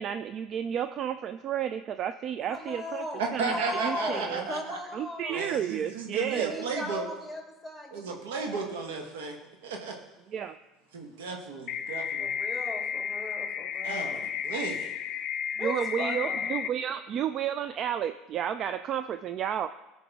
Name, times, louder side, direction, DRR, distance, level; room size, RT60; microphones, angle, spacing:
voice 1, 0.0-3.0 3.3-4.4 4.9-6.6 10.3-10.6 15.6-19.7, right 9 dB, 50° right, 11 dB, 0.3 m, -32 dB
voice 2, 2.5-5.5 6.2-8.8 12.2-14.3 15.6-16.6, left 1 dB, 5° right, -1 dB, 2.9 m, -38 dB
voice 3, 3.2-4.8 5.3-7.1 7.9-9.4 9.6-9.9 10.9-12.3 13.8-14.9, right 4 dB, 80° right, 2 dB, 1.2 m, -34 dB
sound 1, 11.7-16.7, left 8 dB, 55° left, 0.5 m, -32 dB
14.5 x 5.0 x 3.5 m, 1.0 s
hypercardioid pair, 85°, 0 cm